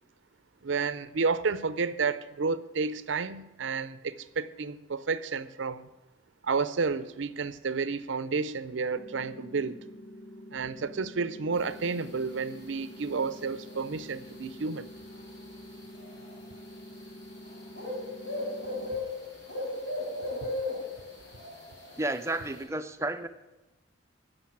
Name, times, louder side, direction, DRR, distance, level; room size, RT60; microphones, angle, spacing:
voice 1, 0.6-5.9 6.4-9.8 10.5-14.9, right 4 dB, 70° right, 0.5 m, -31 dB
sound 1, 9.0-19.0, left 1 dB, 80° left, 0.9 m, -47 dB
sound 2, 11.5-22.6, left 2 dB, 65° left, 5.6 m, -38 dB
voice 2, 22.0-23.3, right 2 dB, 15° right, 0.5 m, -31 dB
11.5 x 6.7 x 8.7 m
head